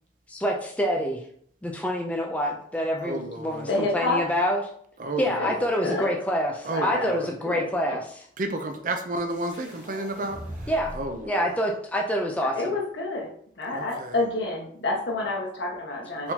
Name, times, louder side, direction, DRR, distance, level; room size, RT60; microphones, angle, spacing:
voice 1, 0.3-1.2 1.6-4.6 5.2-8.2 10.7-10.9 11.2-12.5, equal, 10° left, 0 dB, 0.4 m, -26 dB
voice 2, 3.0-3.7 5.0-5.5 6.7-7.2 8.4-10.4 11.0-11.3 13.7-14.1 16.2-16.3, right 2 dB, 45° right, 6 dB, 0.5 m, -31 dB
voice 3, 3.7-4.2 5.4-5.5 5.8-6.2 6.7-8.0 12.4-13.3 13.6-16.3, left 2 dB, 75° left, -2 dB, 1.3 m, -29 dB
sound 1, 9.3-11.3, equal, 10° right, 1.5 m, -40 dB
4.5 x 3.6 x 2.8 m, 0.62 s
head